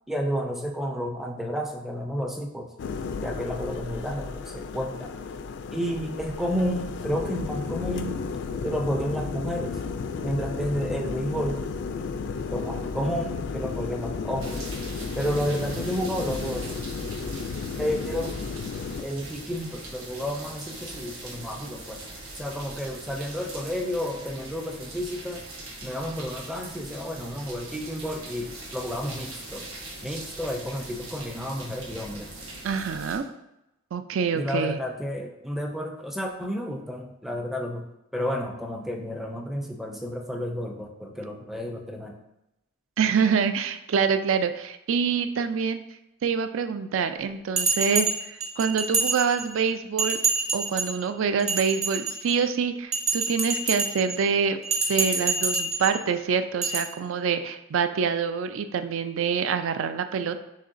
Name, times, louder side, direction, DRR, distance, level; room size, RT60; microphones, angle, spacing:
voice 1, 0.1-2.7 3.2-5.1 5.7-8.2 8.6-9.8 10.2-11.6 12.5-14.8 15.1-16.7 17.8-18.4 19.0-22.0 22.3-25.4 25.8-29.7 30.0-32.3 34.3-37.8 38.1-42.2, equal, ahead, 2 dB, 0.4 m, -31 dB
sound 1, 2.8-19.0, left 5 dB, 55° left, 0.3 m, -33 dB
sound 2, 14.4-33.2, right 2 dB, 85° right, 1.3 m, -41 dB
voice 2, 32.6-33.2 33.9-34.8 43.0-45.8 46.2-50.2 50.5-54.6 54.9-60.4, right 6 dB, 65° right, 9 dB, 0.4 m, -26 dB
Bell, 47.6-49.6 50.0-51.0 51.4-52.4 52.9-54.2 54.6-56.0 56.6-56.8, right 4 dB, 35° right, 1.1 m, -26 dB
6.5 x 3.1 x 2.6 m, 0.90 s
head